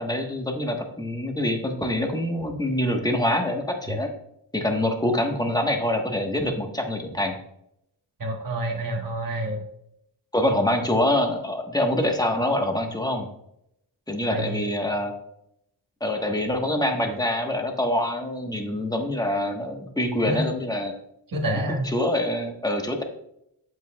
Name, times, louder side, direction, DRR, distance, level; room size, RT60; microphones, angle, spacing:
voice 1, 0.0-4.1 4.5-7.4 10.3-13.3 14.1-15.1 16.0-20.9 21.8-23.0, left 1 dB, 10° left, 3 dB, 1.1 m, -25 dB
voice 2, 8.2-9.6 14.3-14.6 20.3-20.4 21.3-21.9, right 1 dB, 50° right, 0 dB, 1.3 m, -28 dB
7.9 x 7.7 x 2.2 m, 0.77 s
wide cardioid pair, 85°, 44 cm